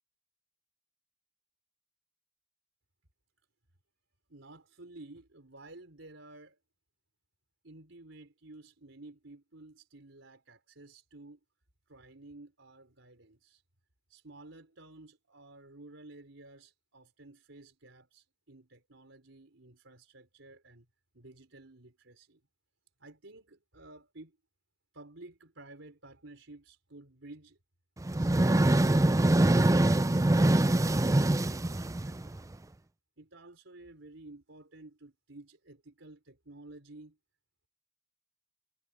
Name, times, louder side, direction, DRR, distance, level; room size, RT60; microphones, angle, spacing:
voice 1, 4.3-6.6 7.6-11.4 11.9-13.6 14.1-20.9 21.1-22.4 23.0-24.4 24.9-27.6 33.2-37.2, right 2 dB, 80° right, 4.2 m, -53 dB
sound 1, 28.0-32.5, right 1 dB, 15° right, 0.5 m, -24 dB
head